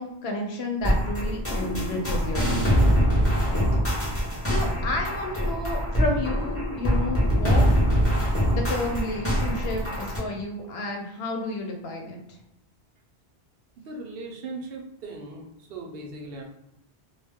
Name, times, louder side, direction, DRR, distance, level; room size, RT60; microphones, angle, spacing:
voice 1, 0.0-2.7 3.5-3.7 4.1-7.7 8.5-12.4, left 2 dB, 80° left, 2 dB, 0.9 m, -31 dB
sound 1, 0.8-10.2, equal, 15° left, 0.8 m, -24 dB
voice 2, 13.8-16.4, right 2 dB, 70° right, 1 dB, 0.8 m, -38 dB
2.3 x 2.1 x 3.4 m, 0.84 s
omnidirectional pair, 1.0 m